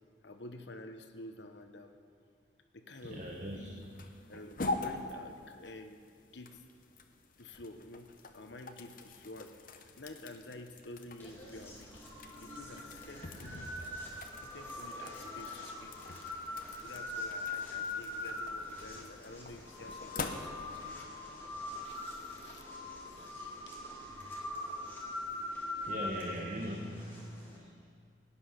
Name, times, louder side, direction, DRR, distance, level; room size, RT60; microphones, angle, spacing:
voice 1, 0.2-2.0 2.7-3.3 3.5-3.9 4.3-6.0 6.3-6.6 7.4-14.1 14.4-16.0 16.8-21.1 21.8-22.7 23.0-23.8, left 2 dB, 70° left, 6 dB, 1.1 m, -50 dB
sound 1, 3.0-21.0, left 2 dB, 45° left, 0.9 m, -45 dB
voice 2, 3.0-4.1 25.8-28.1, equal, 40° right, -1 dB, 1.2 m, -41 dB
sound 2, 11.2-27.6, left 2 dB, 10° left, 2.6 m, -42 dB
18.0 x 10.0 x 5.9 m, 2.2 s
head